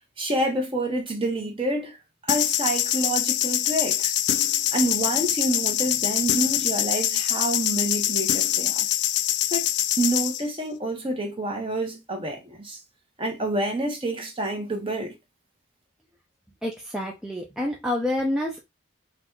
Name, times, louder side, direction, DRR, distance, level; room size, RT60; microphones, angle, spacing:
voice 1, 0.2-2.0 2.2-4.2 4.7-8.9 9.5-9.7 10.0-12.8 13.2-15.1, right 1 dB, 25° right, 1.1 m, -28 dB
sound 1, 2.3-10.4, left 12 dB, 55° left, 0.3 m, -24 dB
voice 2, 16.6-18.6, left 1 dB, 5° right, 0.5 m, -28 dB
4.0 x 2.5 x 4.6 m
head